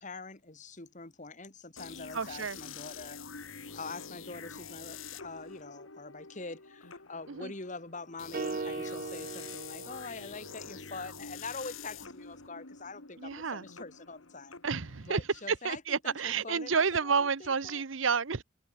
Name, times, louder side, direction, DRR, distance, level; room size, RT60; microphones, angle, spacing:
voice 1, 0.0-14.6 15.0-17.8, left 3 dB, 40° left, 2.2 m, -44 dB
sound 1, 1.8-15.5, left 5 dB, 90° left, 3.0 m, -47 dB
voice 2, 2.1-2.6 7.3-7.5 13.2-13.6 14.6-15.2 15.5-18.4, right 5 dB, 75° right, 0.9 m, -30 dB
sound 2, 8.3-10.7, right 3 dB, 45° right, 0.6 m, -38 dB
head